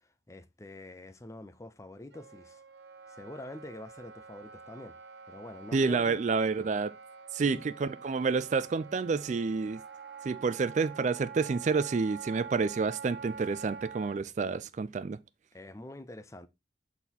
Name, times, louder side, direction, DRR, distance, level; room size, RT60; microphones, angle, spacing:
voice 1, 0.0-2.6 3.2-5.0 5.3-6.2 7.4-7.6 15.5-16.5, left 1 dB, 15° left, 0.5 m, -45 dB
Wind instrument woodwind instrument, 2.1-14.2, right 6 dB, 65° right, 0.7 m, -47 dB
voice 2, 5.7-6.9 7.3-9.8 10.2-15.2, right 4 dB, 40° right, 0.3 m, -29 dB
7.1 x 4.1 x 4.2 m
head